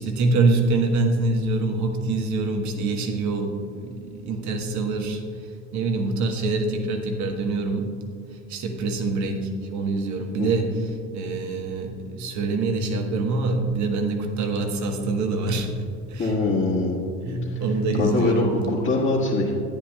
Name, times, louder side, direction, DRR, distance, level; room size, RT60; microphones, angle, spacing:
voice 1, 0.0-8.0 8.3-16.4 17.2-18.6, right 3 dB, 50° right, 4 dB, 1.3 m, -25 dB
voice 2, 16.2-17.1 17.5-17.6 18.0-19.5, left 2 dB, 35° left, -5 dB, 1.6 m, -23 dB
12.0 x 9.8 x 2.3 m, 2.3 s
hypercardioid pair, 70°, 38 cm